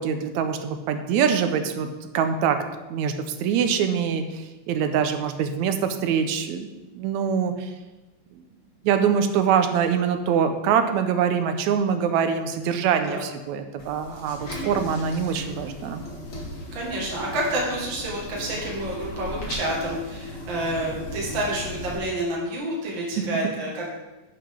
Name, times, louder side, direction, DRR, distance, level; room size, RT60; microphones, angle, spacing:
voice 1, 0.0-1.9 2.1-2.6 2.9-3.1 3.4-6.7 6.9-7.7 8.8-16.0 23.4-23.5, right 7 dB, 85° right, 8 dB, 2.0 m, -24 dB
sound 1, 13.8-22.0, left 1 dB, 30° left, 2.0 m, -36 dB
voice 2, 16.7-23.9, right 1 dB, 45° right, -3 dB, 2.4 m, -29 dB
11.0 x 6.8 x 3.7 m, 1.1 s
omnidirectional pair, 3.3 m